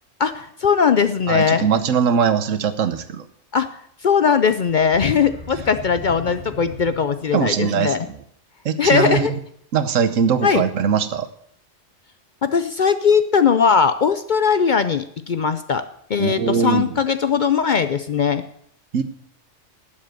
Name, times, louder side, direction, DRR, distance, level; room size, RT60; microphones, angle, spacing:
voice 1, 0.2-1.7 3.5-3.7 4.0-8.1 8.8-9.3 10.4-10.6 12.4-15.8 16.1-18.4, left 6 dB, 55° left, 11 dB, 0.6 m, -19 dB
voice 2, 1.3-3.3 7.3-8.2 8.6-9.3 9.7-11.3 16.2-16.9 18.9-19.0, right 7 dB, 85° right, 12 dB, 1.3 m, -21 dB
sound 1, 4.7-7.5, equal, 5° left, 1.8 m, -37 dB
11.5 x 7.5 x 7.7 m, 0.66 s
omnidirectional pair, 1.3 m